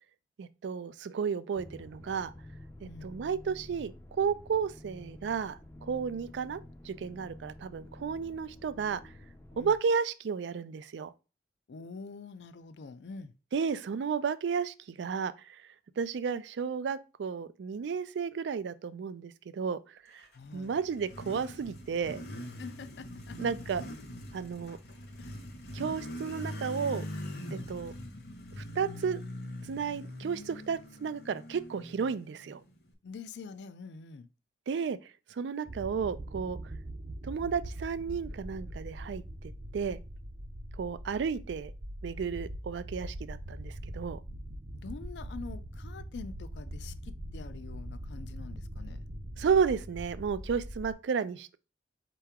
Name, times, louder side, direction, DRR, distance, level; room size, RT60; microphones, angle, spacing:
voice 1, 0.4-2.3 2.8-3.9 4.2-5.6 5.9-9.0 9.6-11.1 13.5-15.6 16.0-19.8 20.1-20.2 20.5-22.2 23.4-23.8 24.3-24.8 25.7-27.0 27.5-27.9 28.6-29.2 29.7-32.6 34.7-35.0 35.4-36.6 37.2-39.2 39.7-40.0 40.8-41.7 42.0-44.2 49.4-51.6, right 6 dB, 90° right, 0.4 m, -32 dB
sound 1, 1.5-9.8, left 1 dB, 15° left, 0.4 m, -50 dB
voice 2, 2.8-3.2 9.5-9.7 11.7-13.3 20.3-20.8 22.6-23.4 25.2-25.3 33.0-34.3 44.7-49.1, left 4 dB, 80° left, 0.4 m, -45 dB
Motorcycle, 20.2-32.9, left 1 dB, 60° left, 1.0 m, -43 dB
sound 2, 35.7-50.9, right 1 dB, 40° right, 0.6 m, -42 dB
4.6 x 3.0 x 3.4 m
head